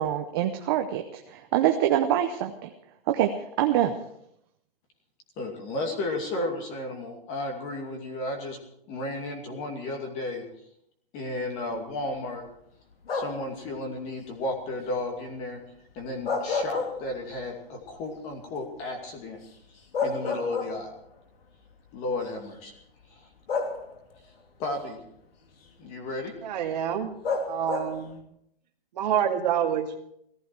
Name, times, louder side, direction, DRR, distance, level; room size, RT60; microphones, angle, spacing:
voice 1, 0.0-2.7 3.1-3.3 3.6-3.9, right 11 dB, 25° right, 5 dB, 0.7 m, -25 dB
voice 2, 5.4-8.6 8.9-10.5 11.1-12.4 13.1-15.6 15.9-19.4 20.0-20.9 21.9-22.7 23.1-23.3 24.6-25.0 25.8-26.3, left 2 dB, 25° left, 3 dB, 2.4 m, -33 dB
sound 1, 13.0-13.6 16.0-17.4 17.8-17.9 19.5-19.6 19.9-21.1 22.1-22.2 23.5-24.2 27.2-28.1, left 4 dB, 80° left, 2.8 m, -30 dB
voice 3, 26.4-27.1 27.5-28.2 28.9-30.0, right 9 dB, 45° right, 1 dB, 2.1 m, -27 dB
17.0 x 15.0 x 4.6 m, 0.75 s
hypercardioid pair, 170°, 29 cm